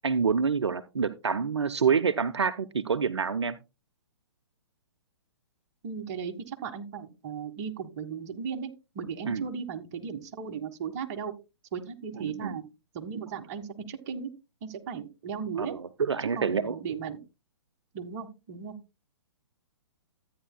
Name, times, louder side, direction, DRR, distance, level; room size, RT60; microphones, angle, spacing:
voice 1, 0.0-3.5 9.2-9.5 12.2-12.6 15.6-16.7, right 6 dB, 75° right, 10 dB, 0.7 m, -27 dB
voice 2, 5.8-8.7 8.9-11.3 11.7-12.6 12.9-14.3 14.6-15.7 16.3-17.2 17.9-18.8, right 6 dB, 40° right, 5 dB, 1.5 m, -36 dB
13.5 x 9.4 x 2.2 m, 0.27 s
figure-of-eight pair, 125°, 14 cm